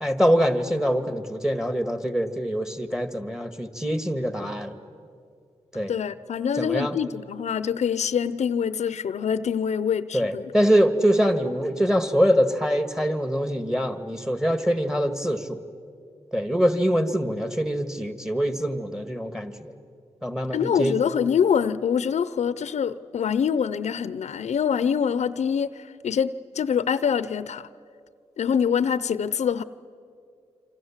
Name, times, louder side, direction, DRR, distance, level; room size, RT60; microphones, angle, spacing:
voice 1, 0.0-4.8 5.7-5.9 6.6-7.0 10.1-15.6 16.3-19.7 20.2-20.9, equal, 5° right, 9 dB, 1.9 m, -24 dB
voice 2, 5.9-10.5 20.5-25.7 26.0-27.7 28.4-29.6, left 7 dB, 85° left, 16 dB, 0.7 m, -25 dB
28.0 x 26.5 x 7.4 m, 2.3 s
wide cardioid pair, 85°, 11 cm